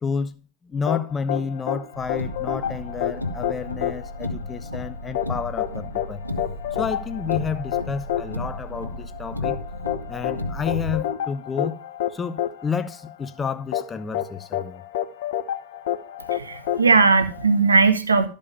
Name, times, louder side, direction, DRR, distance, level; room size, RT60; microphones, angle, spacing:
voice 1, 0.0-6.2 6.7-9.6 10.1-11.8 12.1-14.8, left 6 dB, 20° left, 0.6 m, -30 dB
sound 1, 0.9-17.7, left 11 dB, 55° left, 1.0 m, -29 dB
Car, 1.9-10.9, left 1 dB, 85° left, 1.3 m, -33 dB
voice 2, 16.3-18.3, right 4 dB, 75° right, 1.0 m, -18 dB
13.0 x 5.3 x 5.4 m
figure-of-eight pair, 90°, 0 cm